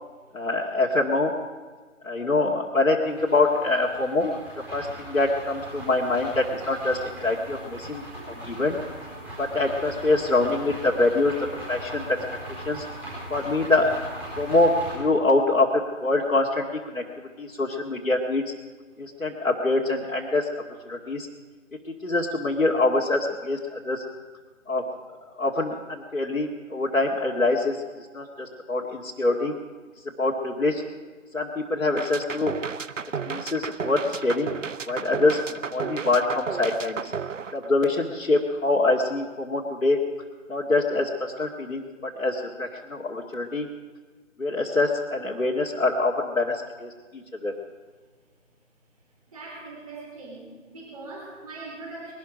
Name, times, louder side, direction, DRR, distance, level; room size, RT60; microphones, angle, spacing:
voice 1, 0.3-1.3 2.0-4.4 4.7-8.8 9.4-11.3 11.7-12.2 12.6-12.8 13.3-14.0 14.4-18.4 19.0-20.5 20.8-21.3 22.0-24.0 24.7-24.8 25.4-27.8 28.1-29.5 30.2-30.8 31.3-32.5 33.3-34.5 34.9-37.1 37.5-40.0 40.5-43.7 44.4-47.5, left 2 dB, 85° left, -4 dB, 2.2 m, -25 dB
sound 1, 3.0-14.9, right 1 dB, 5° right, 4.5 m, -39 dB
sound 2, 32.0-38.2, right 6 dB, 70° right, 0.7 m, -33 dB
voice 2, 49.3-50.4 50.7-52.1, right 3 dB, 25° right, -3 dB, 3.8 m, -40 dB
21.5 x 11.5 x 5.1 m, 1.4 s
figure-of-eight pair, 165°, 40 cm